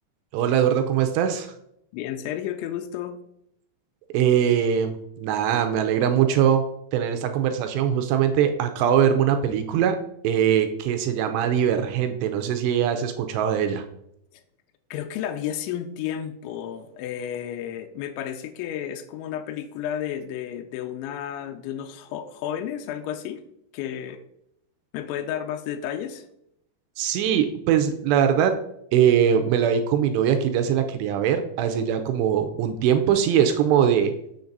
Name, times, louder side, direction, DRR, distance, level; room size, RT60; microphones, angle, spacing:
voice 1, 0.3-1.5 4.1-6.6 6.9-10.0 10.2-13.9 27.0-28.6 28.9-34.1, right 9 dB, 80° right, 7 dB, 2.5 m, -21 dB
voice 2, 1.9-3.2 14.9-23.4 23.7-24.2 24.9-26.2, left 10 dB, 80° left, 6 dB, 2.9 m, -32 dB
7.2 x 7.1 x 3.9 m, 0.76 s
omnidirectional pair, 5.5 m